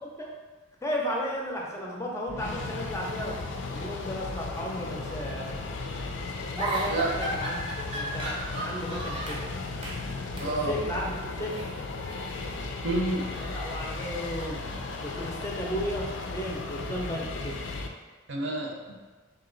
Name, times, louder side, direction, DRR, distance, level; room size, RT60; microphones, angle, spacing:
voice 1, 0.0-0.4 0.8-5.5 6.5-9.5 10.4-11.7 13.4-14.7 15.0-17.7, equal, 15° left, -2 dB, 0.5 m, -34 dB
sound 1, 2.3-17.9, left 3 dB, 70° left, 0.4 m, -36 dB
sound 2, 6.6-9.5 9.8-10.1 10.4-10.6 11.5-12.6 13.0-15.4, right 2 dB, 25° right, 0.6 m, -36 dB
voice 2, 10.4-10.7 12.6-13.4 18.3-19.0, right 2 dB, 65° right, -1 dB, 0.7 m, -30 dB
3.7 x 2.8 x 3.9 m, 1.3 s
head